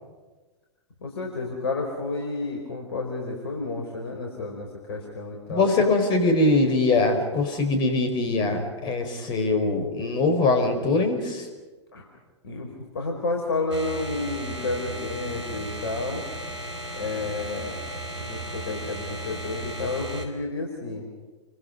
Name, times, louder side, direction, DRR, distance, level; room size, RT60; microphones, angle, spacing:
voice 1, 1.0-5.7 11.9-12.0 12.4-12.7 12.9-16.2 17.0-17.7 18.2-21.1, left 3 dB, 60° left, 1 dB, 4.9 m, -31 dB
voice 2, 5.5-11.5, left 2 dB, 30° left, 6 dB, 5.2 m, -22 dB
sound 1, 13.7-20.3, right 1 dB, 80° right, 4.3 m, -35 dB
29.5 x 24.5 x 5.5 m, 1.2 s
figure-of-eight pair, 100°, 15 cm